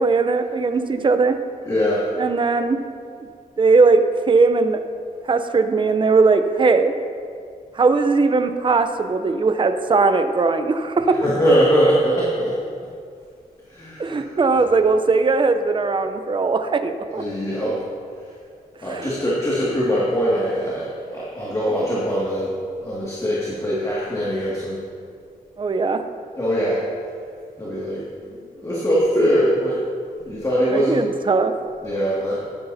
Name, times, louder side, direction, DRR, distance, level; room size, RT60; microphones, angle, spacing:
voice 1, 0.0-1.4 2.2-2.8 3.6-4.8 5.3-6.9 7.7-11.2 14.0-17.2 18.8-19.1 25.6-26.0 30.7-31.5, right 4 dB, 30° right, 9 dB, 0.6 m, -19 dB
voice 2, 1.7-2.1 11.2-12.6 13.7-14.6 17.2-17.8 18.8-24.8 26.4-26.9 27.6-29.9 30.2-31.0 31.8-32.4, equal, 20° left, -7 dB, 2.0 m, -22 dB
13.0 x 9.9 x 2.7 m, 2.2 s
cardioid pair, 85°, 16 cm